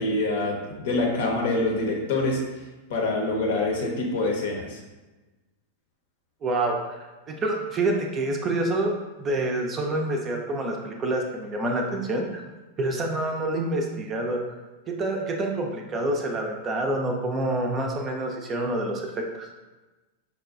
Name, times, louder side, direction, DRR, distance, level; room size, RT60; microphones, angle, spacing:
voice 1, 0.0-2.4 2.9-4.8, left 2 dB, 55° left, 0 dB, 0.7 m, -25 dB
voice 2, 6.4-12.4 12.8-14.4 14.9-19.5, right 2 dB, 25° right, 2 dB, 0.5 m, -27 dB
5.3 x 2.2 x 2.5 m, 1.1 s
figure-of-eight pair, 90°, 0 cm